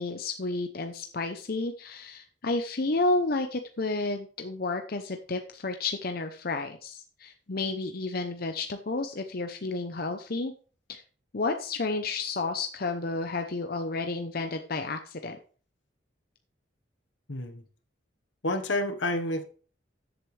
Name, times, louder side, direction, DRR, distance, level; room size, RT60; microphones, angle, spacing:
voice 1, 0.0-10.5 10.9-11.0 11.3-15.4, left 3 dB, 50° left, 6 dB, 0.8 m, -31 dB
voice 2, 17.3-17.6 18.4-19.4, left 1 dB, 75° left, 7 dB, 1.4 m, -29 dB
13.5 x 8.0 x 3.3 m, 0.40 s
head